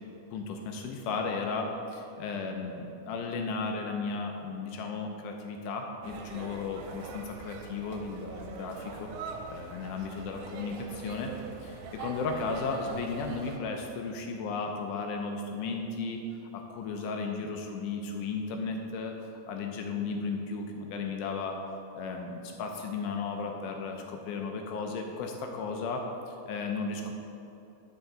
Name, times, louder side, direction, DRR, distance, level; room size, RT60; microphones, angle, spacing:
voice 1, 0.3-9.1 9.5-11.3 11.6-16.2 16.5-21.6 21.9-27.1, left 4 dB, 80° left, 3 dB, 2.1 m, -35 dB
sound 1, 6.0-13.6, right 4 dB, 80° right, 2.2 m, -43 dB
9.6 x 5.4 x 3.7 m, 2.8 s
omnidirectional pair, 3.8 m